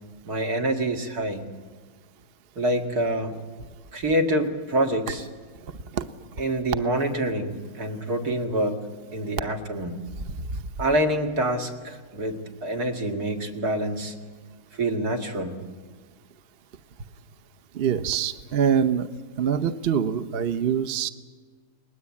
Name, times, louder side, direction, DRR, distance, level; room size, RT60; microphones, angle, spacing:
voice 1, 0.2-1.4 2.6-3.4 3.9-5.3 6.4-8.9 9.1-10.0 10.8-14.1 14.7-15.6, right 1 dB, 75° right, 4 dB, 2.6 m, -26 dB
voice 2, 17.7-19.1 19.4-21.1, right 8 dB, 45° right, 10 dB, 1.0 m, -24 dB
30.0 x 20.5 x 8.5 m, 1.5 s
omnidirectional pair, 1.6 m